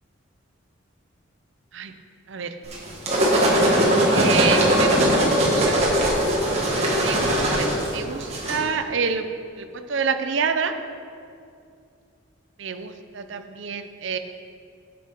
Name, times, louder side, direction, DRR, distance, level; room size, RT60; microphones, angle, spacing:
sound 1, 2.7-8.6, right 1 dB, 30° right, 1.6 m, -20 dB
voice 1, 4.1-5.8 7.0-9.2 9.6-10.7 12.6-14.2, right 6 dB, 65° right, 8 dB, 0.5 m, -28 dB
8.3 x 7.8 x 5.3 m, 2.4 s
head